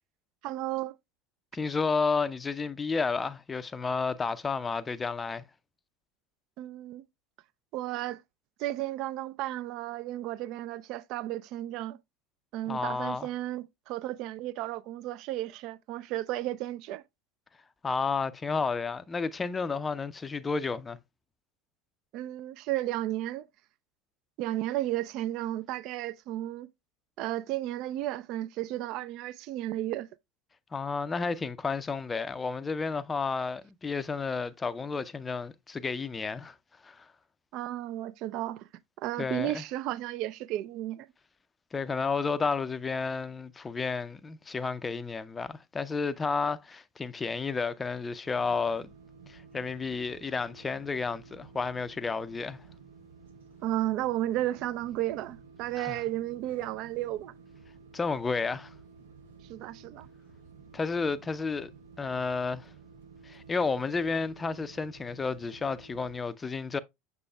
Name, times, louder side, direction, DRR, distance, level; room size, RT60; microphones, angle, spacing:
voice 1, 0.4-1.0 6.6-7.0 7.7-8.2 8.6-12.0 12.5-17.0 22.1-23.5 24.4-26.7 27.2-30.1 37.5-38.7 39.0-41.1 53.6-57.3 59.5-60.1, right 14 dB, 45° right, 0.4 m, -33 dB
voice 2, 1.5-5.4 12.7-13.3 17.8-21.0 30.7-36.6 36.8-37.1 39.2-39.6 41.7-48.9 49.3-52.6 55.8-56.0 57.9-58.7 60.7-61.7 62.0-62.7 63.2-66.8, left 4 dB, 20° left, 0.5 m, -31 dB
sound 1, 48.2-66.2, right 5 dB, 75° right, 0.9 m, -53 dB
6.9 x 6.6 x 2.3 m
figure-of-eight pair, 75°, 0 cm